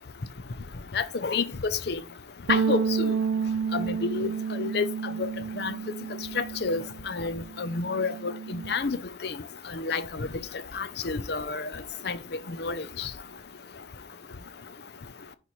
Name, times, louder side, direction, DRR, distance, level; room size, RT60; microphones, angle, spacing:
voice 1, 0.9-2.0 2.5-3.1 3.7-4.9 5.2-5.3 5.6-5.7 6.4-9.3 9.7-10.3 10.7-11.7 12.0-12.2 12.6-13.1, left 4 dB, 60° left, 0.6 m, -29 dB
sound 1, 2.5-7.0 7.3-8.7, right 6 dB, 85° right, 0.4 m, -30 dB
10.0 x 4.2 x 3.1 m
head